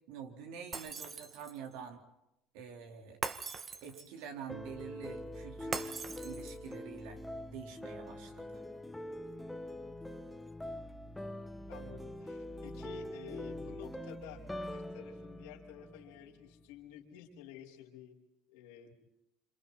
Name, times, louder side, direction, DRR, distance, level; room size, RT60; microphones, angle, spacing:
voice 1, 0.1-2.0 2.5-3.2 3.8-7.2 7.5-8.5, right 7 dB, 80° right, 3 dB, 4.2 m, -47 dB
Shatter, 0.7-1.7 3.2-4.2 5.7-6.7, right 5 dB, 35° right, 1.7 m, -41 dB
sound 1, 4.5-16.6, left 1 dB, 5° left, 1.7 m, -44 dB
voice 2, 11.7-18.2 18.5-18.9, left 10 dB, 85° left, 0 dB, 5.0 m, -51 dB
28.0 x 27.5 x 4.3 m, 0.86 s
supercardioid pair, 95°, 0 cm